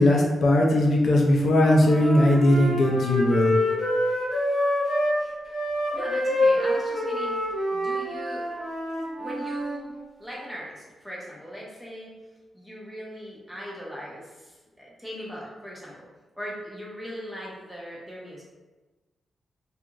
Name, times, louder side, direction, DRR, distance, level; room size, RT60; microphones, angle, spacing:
voice 1, 0.0-3.5, left 1 dB, 65° left, -1 dB, 0.4 m, -19 dB
Wind instrument woodwind instrument, 1.3-5.2 5.5-9.8, left 1 dB, 20° left, 1.0 m, -26 dB
voice 2, 5.9-8.5 9.2-12.2 12.5-16.0 16.4-18.4, equal, 5° right, -5 dB, 0.7 m, -40 dB
2.4 x 2.4 x 2.9 m, 1.2 s
wide cardioid pair, 125°, 0 cm